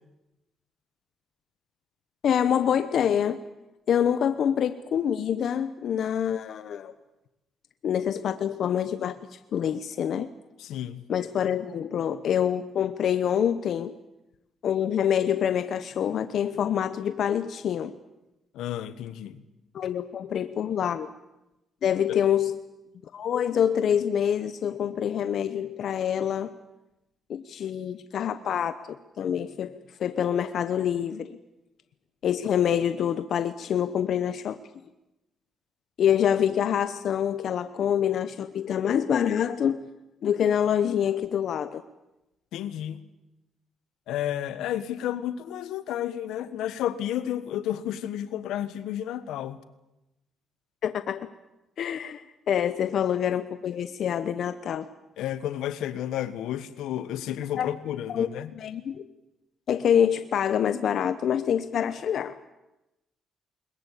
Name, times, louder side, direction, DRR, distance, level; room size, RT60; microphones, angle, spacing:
voice 1, 2.2-3.4 3.9-6.9 7.8-10.3 11.1-14.0 14.6-17.9 19.7-21.1 21.8-22.6 23.1-26.5 27.3-31.4 32.2-34.6 36.0-39.8 40.2-41.8 50.8-51.3 51.8-54.9 57.6-57.7 58.1-59.1 59.7-62.4, left 9 dB, 65° left, 0.9 m, -26 dB
voice 2, 10.6-11.0 18.5-19.4 22.1-22.2 42.5-43.0 44.1-49.6 55.2-58.5, left 11 dB, 85° left, 1.3 m, -31 dB
21.5 x 21.0 x 8.4 m
cardioid pair, 90°, 0 cm